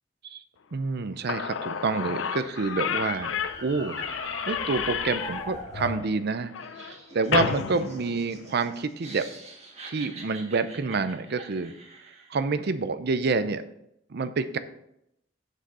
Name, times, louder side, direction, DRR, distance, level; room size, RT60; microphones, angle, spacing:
voice 1, 0.7-4.0 4.5-6.5 6.8-9.3 9.9-11.7 12.3-13.6 14.1-14.6, right 4 dB, 55° right, 11 dB, 0.5 m, -28 dB
Slam / Squeak, 1.0-1.1 1.3-8.8, left 7 dB, 75° left, 0.5 m, -32 dB
Bomb Dropping, 1.7-6.1, left 1 dB, 20° left, 1.4 m, -40 dB
Laughter, 6.6-12.4, right 3 dB, 35° right, 1.6 m, -47 dB
7.4 x 6.4 x 4.2 m, 0.79 s
head